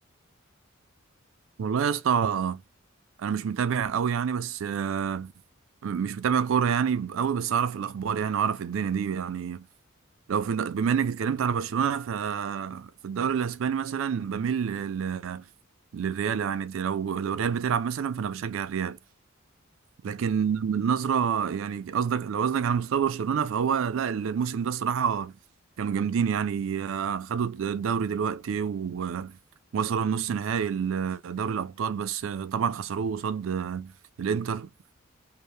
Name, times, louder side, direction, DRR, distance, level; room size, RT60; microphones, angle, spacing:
voice 1, 1.6-2.6 3.2-5.3 5.8-9.7 10.3-15.5 15.9-19.0 20.0-25.4 25.8-29.4 29.7-33.9 34.2-34.7, right 7 dB, 70° right, 0.4 m, -28 dB
2.7 x 2.0 x 3.2 m
head